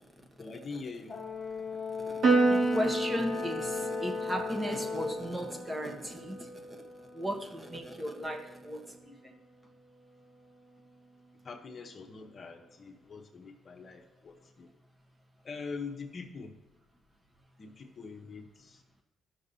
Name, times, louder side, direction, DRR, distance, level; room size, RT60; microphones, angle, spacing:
voice 1, 0.4-1.2 11.4-14.7 15.4-16.5 17.6-18.8, left 4 dB, 45° left, 2 dB, 0.9 m, -43 dB
Brass instrument, 1.1-5.3, left 5 dB, 25° left, 1.5 m, -36 dB
Piano, 2.2-8.9, right 3 dB, 70° right, 2.0 m, -32 dB
voice 2, 2.4-6.8 7.1-9.3, equal, 20° right, 3 dB, 1.3 m, -36 dB
14.0 x 6.2 x 2.7 m, 0.96 s
cardioid pair, 90°, 0 cm